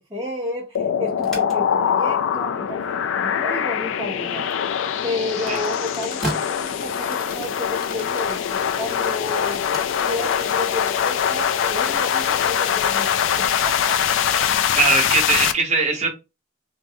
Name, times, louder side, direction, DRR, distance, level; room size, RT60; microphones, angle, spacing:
voice 1, 0.0-9.6 10.0-14.2 14.7-14.8, left 1 dB, 15° right, 0.5 m, -32 dB
sound 1, 0.7-15.5, left 8 dB, 65° left, 0.3 m, -23 dB
sound 2, 1.1-11.6, right 1 dB, ahead, 0.9 m, -40 dB
Typing, 5.5-7.5 7.7-8.6 8.9-10.5 10.9-11.2 11.5-14.4 14.7-15.0, left 5 dB, 45° left, 0.6 m, -38 dB
voice 2, 14.7-16.1, right 4 dB, 35° right, 0.8 m, -20 dB
3.7 x 2.0 x 2.6 m
head